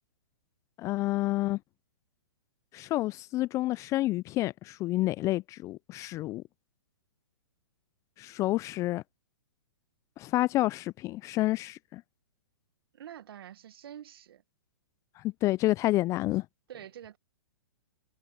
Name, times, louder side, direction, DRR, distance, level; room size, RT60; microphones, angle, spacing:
voice 1, 0.8-1.6 2.7-6.4 8.2-9.0 10.2-12.0 15.2-16.5, left 17 dB, 25° left, 0.4 m, -29 dB
voice 2, 12.9-14.4 16.7-17.2, right 10 dB, 65° right, 1.8 m, -46 dB
hypercardioid pair, 125°, 14 cm